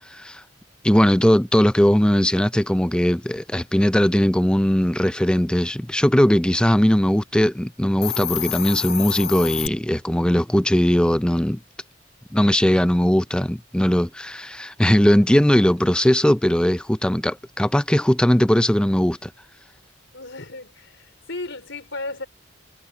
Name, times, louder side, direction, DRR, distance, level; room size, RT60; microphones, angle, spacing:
voice 1, 0.1-0.4 0.8-11.6 12.3-19.3, equal, 5° left, 0.4 m, -19 dB
Hiss, 7.9-9.7, left 11 dB, 50° left, 0.7 m, -28 dB
voice 2, 20.1-22.3, left 2 dB, 70° left, 4.2 m, -34 dB
head